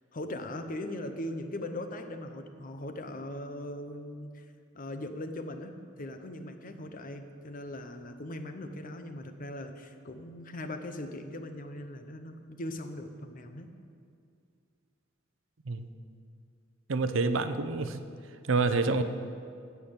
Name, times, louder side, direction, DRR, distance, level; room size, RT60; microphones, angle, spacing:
voice 1, 0.1-4.5 4.7-5.7 6.0-13.7, left 1 dB, 45° left, 8 dB, 0.9 m, -39 dB
voice 2, 16.9-18.0 18.5-19.0, right 3 dB, 70° right, 10 dB, 0.7 m, -27 dB
15.0 x 5.9 x 8.2 m, 2.3 s
head